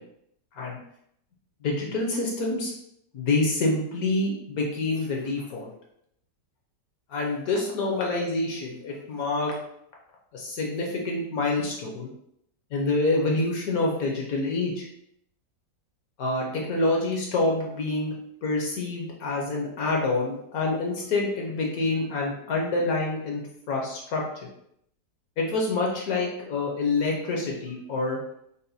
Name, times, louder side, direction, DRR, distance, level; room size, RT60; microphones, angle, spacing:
voice 1, 1.6-2.7 3.1-5.7 7.1-9.6 10.3-12.1 12.7-14.9 16.2-18.1 18.4-23.4 23.7-24.5 25.4-28.2, left 2 dB, 65° left, -1 dB, 1.1 m, -27 dB
5.5 x 2.2 x 2.6 m, 0.73 s
omnidirectional pair, 1.9 m